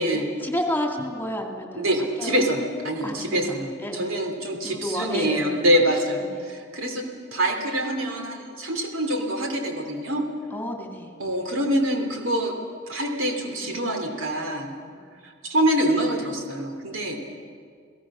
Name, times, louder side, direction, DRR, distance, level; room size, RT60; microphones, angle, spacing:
voice 1, 0.0-1.9 2.2-2.4 3.0-4.2 4.6-5.5 6.2-6.4 10.5-11.1 14.9-15.2, left 1 dB, 10° left, 2 dB, 2.3 m, -31 dB
voice 2, 1.7-7.0 7.3-10.2 11.2-12.5 12.9-14.7 15.2-17.2, right 1 dB, 70° right, 4 dB, 3.0 m, -25 dB
29.0 x 17.0 x 6.2 m, 2.1 s
head